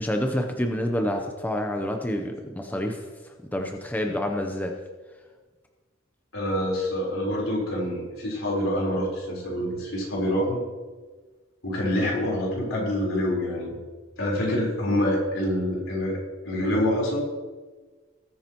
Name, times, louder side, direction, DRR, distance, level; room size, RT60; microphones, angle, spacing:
voice 1, 0.0-3.0 3.5-4.8, left 1 dB, 10° left, 3 dB, 0.8 m, -28 dB
voice 2, 6.3-10.6 11.6-13.8 14.2-17.2, left 1 dB, 75° left, -3 dB, 4.2 m, -26 dB
19.5 x 9.5 x 3.0 m, 1.4 s
head